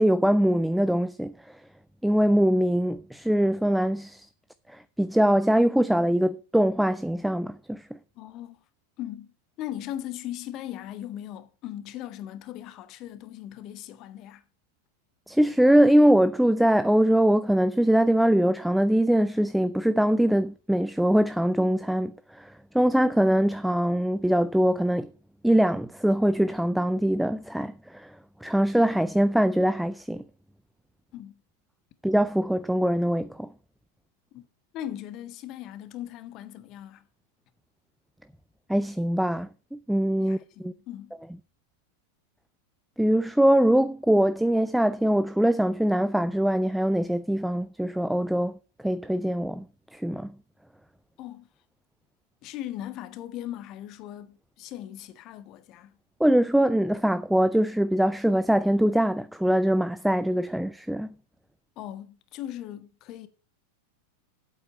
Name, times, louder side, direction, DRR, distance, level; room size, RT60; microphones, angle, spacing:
voice 1, 0.0-1.3 2.0-4.3 4.7-7.8 15.3-25.1 25.4-28.1 28.4-30.2 32.0-33.5 38.7-40.4 40.6-40.7 43.0-48.6 48.8-49.6 49.9-50.3 56.2-61.1, right 1 dB, ahead, 0.4 m, -22 dB
voice 2, 8.1-8.6 9.0-14.4 31.1-31.4 34.3-34.4 34.7-37.1 40.2-41.2 51.2-51.5 52.4-56.0 61.8-63.3, left 12 dB, 40° left, 1.2 m, -39 dB
8.3 x 8.0 x 5.2 m
figure-of-eight pair, 90°, 0 cm